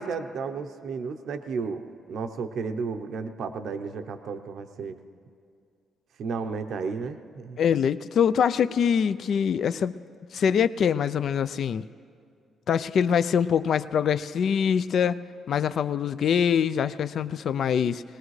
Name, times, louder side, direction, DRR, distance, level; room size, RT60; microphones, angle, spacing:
voice 1, 0.0-5.0 6.2-7.6, right 5 dB, 70° right, 8 dB, 0.7 m, -33 dB
voice 2, 7.6-9.9 10.3-11.9 12.7-15.2 15.5-18.0, left 7 dB, 60° left, 14 dB, 0.3 m, -24 dB
22.5 x 18.5 x 3.2 m, 2.3 s
cardioid pair, 90°, 0 cm